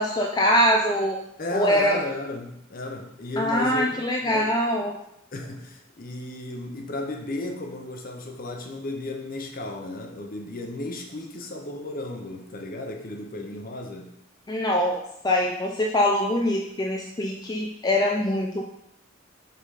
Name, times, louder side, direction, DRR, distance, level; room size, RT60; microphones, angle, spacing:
voice 1, 0.0-1.2 1.5-2.0 3.4-5.0 14.5-18.6, equal, 20° left, 0 dB, 0.5 m, -23 dB
voice 2, 1.4-4.5 5.3-14.1, left 2 dB, 45° left, 3 dB, 0.8 m, -34 dB
5.5 x 3.8 x 4.9 m, 0.78 s
head